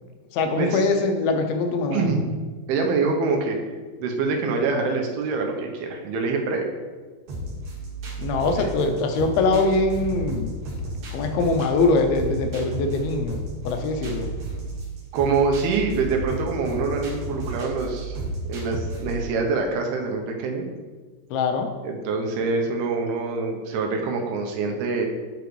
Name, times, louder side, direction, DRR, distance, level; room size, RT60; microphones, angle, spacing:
voice 1, 0.3-2.1 8.2-10.6 11.1-14.3 21.3-21.7, left 3 dB, 80° left, 5 dB, 2.4 m, -23 dB
voice 2, 1.9-2.2 2.7-3.6 4.0-6.7 8.6-8.7 15.1-18.2 18.5-20.7 21.8-25.1, right 4 dB, 80° right, 2 dB, 2.7 m, -25 dB
sound 1, 7.3-19.3, right 2 dB, 65° right, 2.8 m, -32 dB
9.1 x 5.0 x 3.1 m, 1.4 s
omnidirectional pair, 4.5 m